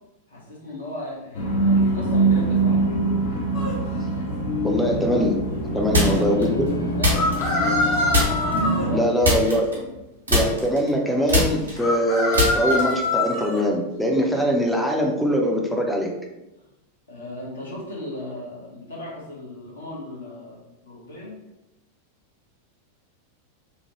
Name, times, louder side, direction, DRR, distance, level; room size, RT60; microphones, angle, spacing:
voice 1, 0.3-2.9 5.7-6.6 6.9-8.0 8.7-9.1 9.7-9.9 17.1-21.4, left 1 dB, 75° left, -5 dB, 1.0 m, -36 dB
sound 1, 1.3-9.0, right 2 dB, 55° left, 0.5 m, -24 dB
sound 2, 3.5-3.7 7.1-8.9 11.8-13.6, left 2 dB, 40° left, 1.1 m, -24 dB
voice 2, 4.6-5.4 5.7-6.7 8.9-9.7 10.3-16.1, equal, ahead, 0 dB, 0.5 m, -22 dB
sound 3, 5.9-6.4 7.0-7.8 8.1-8.6 9.2-10.0 10.3-13.1, left 1 dB, 75° right, 0.9 m, -23 dB
3.0 x 2.1 x 2.9 m, 0.96 s
figure-of-eight pair, 90°, 0 cm